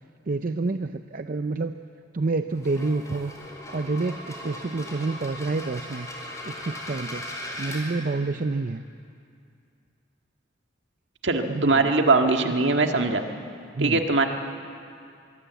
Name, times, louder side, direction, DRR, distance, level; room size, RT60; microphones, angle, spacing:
voice 1, 0.3-1.8 2.1-3.3 3.7-6.1 6.4-7.3 7.6-8.8 11.5-11.9 13.7-14.0, right 3 dB, 45° right, 9 dB, 0.6 m, -28 dB
sound 1, 2.5-7.8, left 1 dB, 15° left, 4.8 m, -38 dB
voice 2, 11.2-13.2 13.8-14.2, right 3 dB, 70° right, 4 dB, 1.8 m, -21 dB
23.0 x 23.0 x 8.2 m, 2.4 s
head